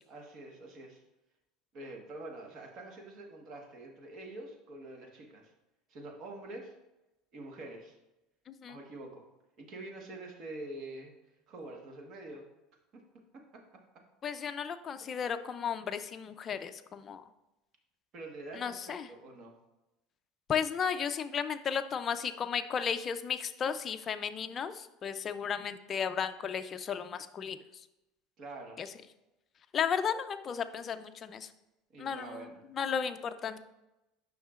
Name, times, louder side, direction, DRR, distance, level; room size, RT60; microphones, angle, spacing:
voice 1, 0.1-1.0 1.7-5.4 5.9-6.7 7.3-8.0 8.7-9.3 9.6-11.1 11.5-12.4 12.9-13.0 13.3-13.4 18.1-19.5 28.4-28.8 31.9-32.6, right 2 dB, 45° right, 1 dB, 1.3 m, -46 dB
voice 2, 8.5-8.8 14.2-17.2 18.5-19.1 20.5-27.6 28.8-28.9 29.7-31.5 32.0-33.6, left 7 dB, 30° left, 9 dB, 0.4 m, -34 dB
9.1 x 5.7 x 2.4 m, 0.95 s
cardioid pair, 140°, 0 cm